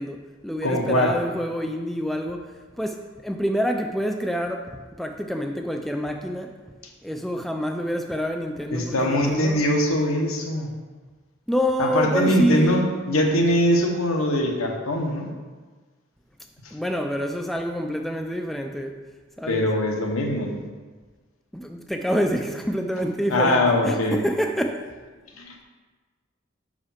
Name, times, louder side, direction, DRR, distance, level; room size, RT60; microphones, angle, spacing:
voice 1, 0.0-2.5 2.8-4.7 5.0-6.5 7.0-9.7 11.5-12.8 16.7-19.0 19.4-19.7 21.5-24.8, equal, ahead, 4 dB, 0.3 m, -27 dB
voice 2, 0.6-1.2 8.7-10.7 11.8-15.3 19.5-20.6 23.3-24.2 25.4-25.5, left 1 dB, 90° left, 1 dB, 1.1 m, -22 dB
5.6 x 4.9 x 5.6 m, 1.4 s
head